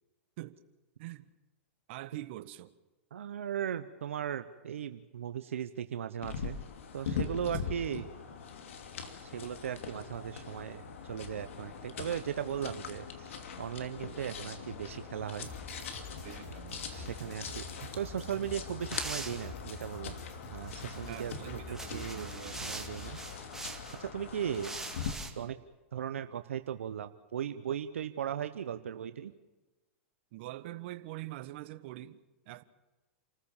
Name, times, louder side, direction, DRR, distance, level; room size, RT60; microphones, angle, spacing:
voice 1, 1.9-2.7 16.2-17.6 21.0-22.9 30.3-32.6, right 16 dB, 60° right, 1.3 m, -45 dB
voice 2, 3.1-6.6 6.9-8.1 9.2-15.5 16.9-20.2 20.5-23.2 23.9-24.8 25.4-25.6 25.9-29.3, right 9 dB, 85° right, 0.9 m, -37 dB
sound 1, 6.2-25.1, left 6 dB, 75° left, 2.7 m, -42 dB
sound 2, 15.4-23.4, left 3 dB, 45° left, 5.8 m, -48 dB
sound 3, 18.9-19.9 20.6-21.2 21.7-24.0 24.5-25.3, right 3 dB, 5° right, 2.4 m, -43 dB
28.5 x 14.5 x 7.2 m
hypercardioid pair, 115°, 7 cm